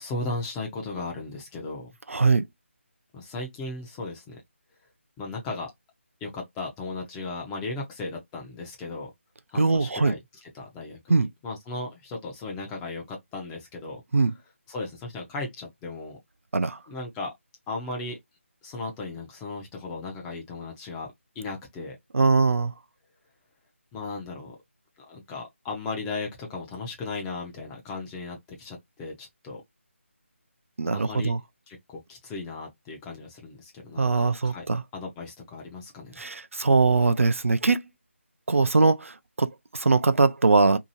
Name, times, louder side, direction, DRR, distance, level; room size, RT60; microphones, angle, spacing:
voice 1, 0.0-1.9 3.1-4.4 5.2-5.7 6.2-9.1 9.5-10.2 10.5-11.2 11.4-14.0 14.7-16.2 16.9-17.3 17.7-18.2 18.6-21.1 21.4-22.0 23.9-24.6 25.1-29.6 30.9-31.3 31.7-34.6 34.9-36.2, left 3 dB, 10° left, 0.5 m, -36 dB
voice 2, 2.1-2.5 9.6-10.2 11.1-11.3 14.1-14.3 16.5-16.8 22.1-22.7 30.8-31.4 34.0-34.8 36.2-37.8 38.5-40.8, right 3 dB, 75° right, 0.4 m, -21 dB
2.8 x 2.6 x 2.7 m
figure-of-eight pair, 155°, 7 cm